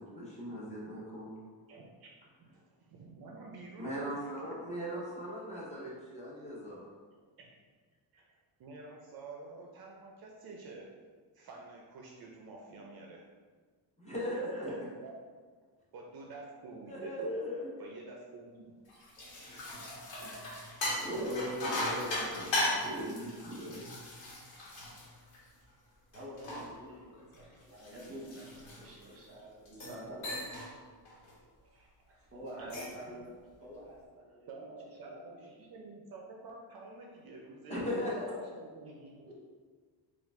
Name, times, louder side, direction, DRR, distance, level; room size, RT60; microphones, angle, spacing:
voice 1, 0.0-1.3 3.8-6.9 14.0-14.7 16.9-17.7 20.2-20.5 21.0-23.9 37.7-38.1, equal, 15° left, -7 dB, 0.8 m, -38 dB
voice 2, 1.7-2.1 2.4-5.1 7.4-7.5 8.1-10.9 11.3-13.2 14.7-15.1 15.9-17.1 17.8-18.8 32.7-32.9 34.5-39.3, right 3 dB, 55° right, -1 dB, 0.5 m, -49 dB
sound 1, 18.9-25.7 26.1-29.2 29.7-30.0 30.2-30.7 31.1-31.3 32.5-33.0, left 1 dB, 80° left, 1.2 m, -38 dB
voice 3, 26.1-30.3 31.6-33.3 33.6-34.7 35.0-35.2 35.6-35.7 37.7-38.2 39.3-39.4, right 1 dB, 30° right, -3 dB, 0.9 m, -48 dB
4.5 x 2.5 x 3.5 m, 1.5 s
cardioid pair, 165°, 45 cm